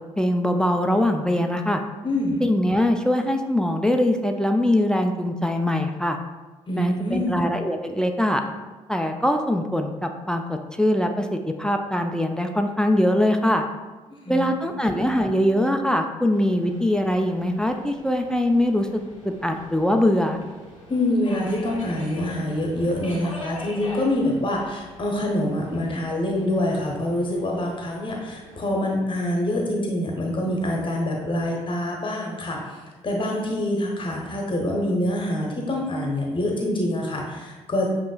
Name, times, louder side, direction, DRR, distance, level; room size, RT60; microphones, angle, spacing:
voice 1, 0.2-1.8 2.4-6.2 6.8-8.4 8.9-13.6 14.3-19.0 19.4-20.4, left 1 dB, 5° left, 5 dB, 0.4 m, -22 dB
voice 2, 2.0-2.4 6.7-7.5 14.2-14.8 20.9-32.8 33.0-37.9, left 1 dB, 30° left, -1 dB, 0.9 m, -25 dB
Subway metro underground, 16.3-28.7, left 1 dB, 90° left, 0.7 m, -43 dB
7.4 x 2.9 x 2.3 m, 1.2 s
figure-of-eight pair, 45°, 16 cm